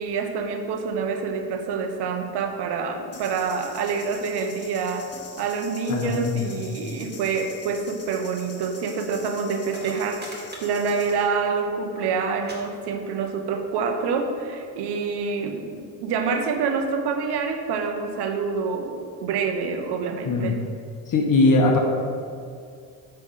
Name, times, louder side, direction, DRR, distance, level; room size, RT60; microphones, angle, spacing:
voice 1, 0.0-20.6, right 5 dB, 80° right, 5 dB, 0.9 m, -27 dB
sound 1, 3.1-11.3, left 4 dB, 35° left, 1.5 m, -45 dB
voice 2, 5.9-6.6 20.2-20.5 21.1-21.8, left 2 dB, 50° left, 1 dB, 1.1 m, -20 dB
sound 2, 9.6-11.6 11.8-12.1 12.4-12.6 12.8-13.3 14.2-14.3, right 1 dB, 25° right, 2.0 m, -41 dB
8.4 x 3.4 x 6.5 m, 2.3 s
supercardioid pair, 60°, 40 cm